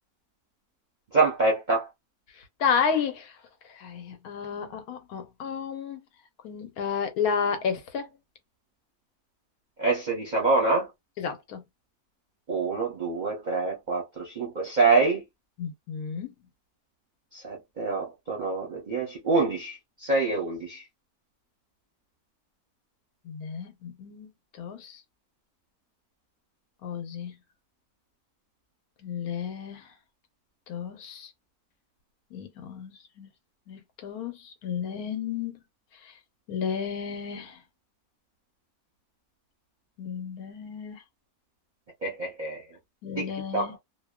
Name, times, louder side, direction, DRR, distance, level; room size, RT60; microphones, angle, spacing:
voice 1, 1.1-1.9 9.8-10.9 12.5-15.2 17.3-20.8 42.0-42.6 43.2-43.7, right 3 dB, 40° right, 0.7 m, -26 dB
voice 2, 2.4-3.4 3.7-6.0 6.4-8.1 11.2-11.6 15.6-16.3 23.2-24.3 24.6-25.0 26.8-27.3 29.0-29.9 30.7-31.3 32.3-33.3 33.7-35.6 36.0-36.1 36.5-37.6 40.0-41.0 43.0-43.7, left 6 dB, 80° left, 1.2 m, -32 dB
2.6 x 2.1 x 2.2 m
omnidirectional pair, 1.6 m